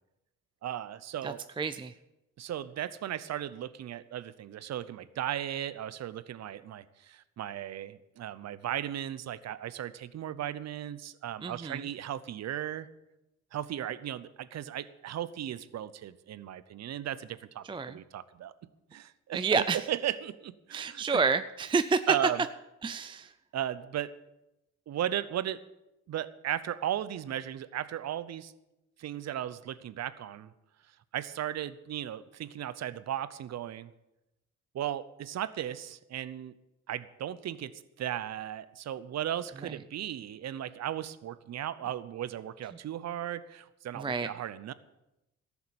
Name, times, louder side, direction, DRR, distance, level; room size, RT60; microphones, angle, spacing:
voice 1, 0.6-1.4 2.4-12.9 13.5-18.5 18.9-21.0 22.1-22.4 23.5-24.1 24.9-25.6 26.1-28.5 29.0-30.5 31.1-33.9 34.7-36.5 36.9-37.7 38.0-44.7, right 11 dB, 60° right, 16 dB, 0.8 m, -36 dB
voice 2, 1.2-1.9 11.4-11.9 17.6-18.0 19.3-19.9 20.7-22.1 22.8-23.3 39.6-39.8 43.9-44.3, right 5 dB, 15° right, 11 dB, 0.4 m, -29 dB
13.5 x 7.1 x 8.8 m, 0.93 s
cardioid pair, 90°, 30 cm